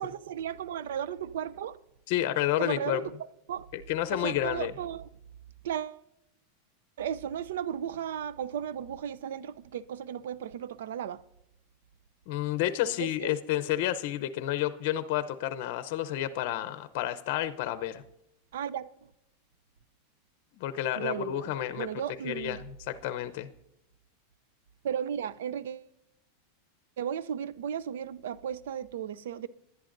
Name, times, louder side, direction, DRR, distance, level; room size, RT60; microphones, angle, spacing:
voice 1, 0.0-1.8 2.6-3.1 3.5-3.7 4.1-5.1 5.6-6.0 7.0-11.2 13.0-13.3 18.5-19.1 20.9-22.6 24.8-25.9 27.0-29.5, right 9 dB, 80° right, 0.5 m, -35 dB
voice 2, 2.1-3.0 3.7-4.7 12.3-18.0 20.5-21.9 22.2-22.6 22.9-23.5, left 13 dB, 55° left, 0.7 m, -30 dB
20.0 x 11.0 x 2.6 m
supercardioid pair, 140°, 0 cm